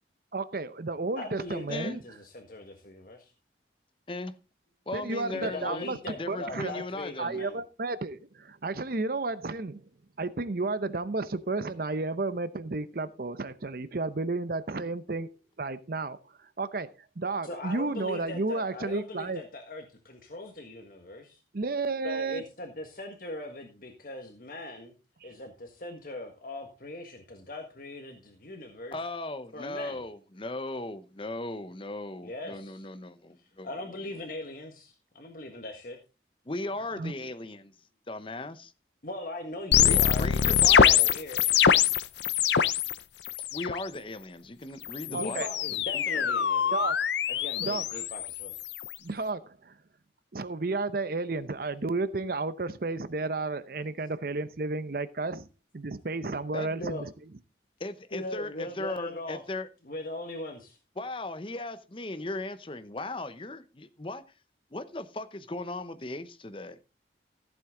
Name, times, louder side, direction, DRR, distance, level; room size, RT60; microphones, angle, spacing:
voice 1, 0.3-2.0 4.9-6.0 6.3-6.7 7.2-9.9 10.2-15.3 15.6-16.9 17.2-19.4 21.5-22.4 37.0-37.1 45.1-45.5 46.7-47.1 47.6-48.0 49.0-49.7 50.3-55.5 55.7-57.1, right 3 dB, 50° right, 0.7 m, -32 dB
voice 2, 1.2-3.3 5.3-7.6 17.4-21.4 22.0-24.9 25.2-29.0 29.5-30.0 32.2-32.8 33.6-36.0 39.0-41.5 45.1-46.9 47.3-48.5 56.8-57.1 58.1-59.4 59.8-60.8, left 2 dB, 50° left, 1.6 m, -40 dB
voice 3, 4.9-5.9 6.2-7.4 28.9-33.7 36.5-37.7 38.1-38.7 39.8-41.1 43.4-45.4 45.9-46.0 56.5-56.7 57.8-59.7 61.0-64.2 64.7-66.8, left 2 dB, 30° left, 0.8 m, -37 dB
sound 1, 39.7-42.9 43.2-43.8 44.8-49.0, left 8 dB, 70° left, 0.6 m, -24 dB
14.5 x 8.0 x 3.7 m
head